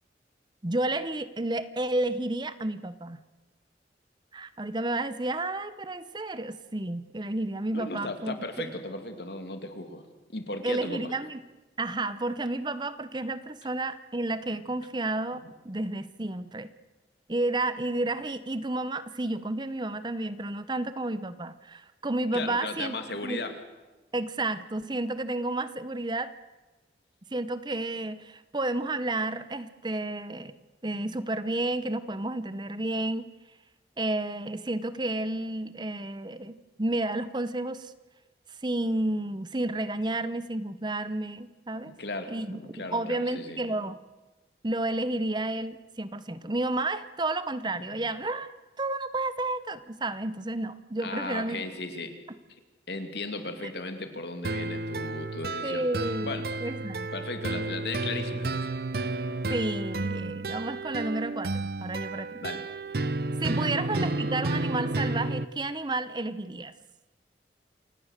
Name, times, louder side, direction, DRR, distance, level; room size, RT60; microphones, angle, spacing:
voice 1, 0.6-3.2 4.3-8.4 10.6-11.4 11.8-16.7 17.3-22.9 23.2-23.4 24.1-26.3 27.3-30.5 30.8-33.3 34.0-37.9 38.6-41.9 42.3-44.0 44.6-48.5 48.8-51.6 53.6-53.7 55.6-57.1 59.5-61.5 61.8-62.4 63.4-66.7, right 2 dB, 25° right, 14 dB, 0.8 m, -31 dB
voice 2, 7.7-10.0 10.3-11.1 15.4-15.5 22.3-23.6 41.8-43.6 48.0-48.1 51.0-52.1 52.9-55.8 56.2-56.5 56.8-58.7 62.4-62.6 63.5-63.7, left 2 dB, 65° left, 7 dB, 2.6 m, -36 dB
sound 1, 54.4-65.4, right 2 dB, 55° right, 0.8 m, -31 dB
28.5 x 17.5 x 6.6 m, 1.2 s
head